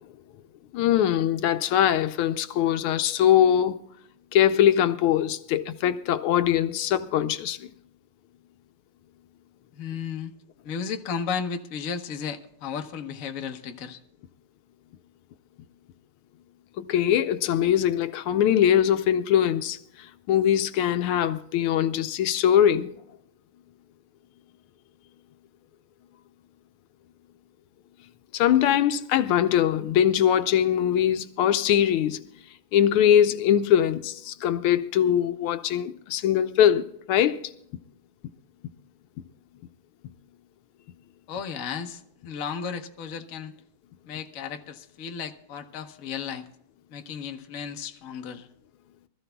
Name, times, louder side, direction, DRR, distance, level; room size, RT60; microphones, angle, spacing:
voice 1, 0.7-3.8 4.3-7.7 16.8-22.9 28.3-32.2 32.7-37.4, left 10 dB, 80° left, 1.5 m, -22 dB
voice 2, 9.7-10.3 10.6-14.0 41.3-43.5 44.0-46.5 46.9-48.5, left 6 dB, 50° left, 1.1 m, -34 dB
24.0 x 14.0 x 2.3 m
omnidirectional pair, 2.3 m